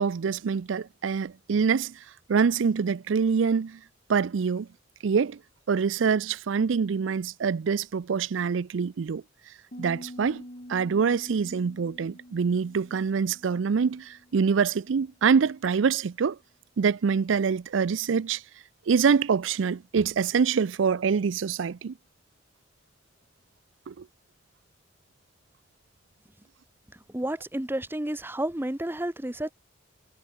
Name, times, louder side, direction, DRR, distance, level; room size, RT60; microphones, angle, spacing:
voice 1, 0.0-1.9 2.3-3.8 4.1-4.7 5.0-5.4 5.7-9.2 9.8-10.4 10.7-16.4 16.8-18.4 18.9-21.9 23.9-24.0, right 6 dB, 75° right, 0.4 m, -25 dB
Piano, 9.7-15.3, equal, 40° left, 5.7 m, -47 dB
voice 2, 27.1-29.5, right 1 dB, 10° right, 0.9 m, -31 dB
head